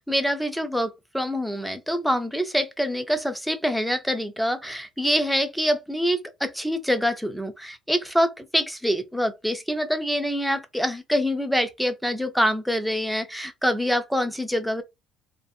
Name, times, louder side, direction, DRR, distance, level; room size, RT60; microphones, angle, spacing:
voice 1, 0.0-14.8, equal, ahead, 0.4 m, -25 dB
2.5 x 2.3 x 2.5 m
cardioid pair, 170°, 0 cm